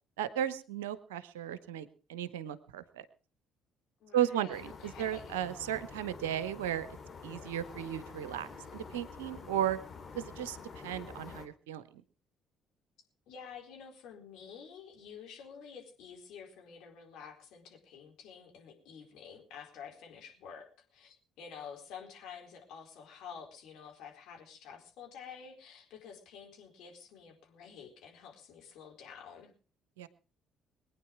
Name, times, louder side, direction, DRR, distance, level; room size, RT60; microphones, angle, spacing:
voice 1, 0.2-3.0 4.1-6.9 7.2-9.8 10.1-10.6 10.8-12.0 30.0-30.1, right 11 dB, 75° right, 14 dB, 0.9 m, -35 dB
voice 2, 4.0-5.4 13.3-29.5, left 7 dB, 65° left, 1 dB, 4.1 m, -50 dB
sound 1, 4.5-11.5, left 5 dB, 45° left, 2.5 m, -48 dB
22.5 x 9.6 x 4.7 m, 0.37 s
figure-of-eight pair, 50°, 0 cm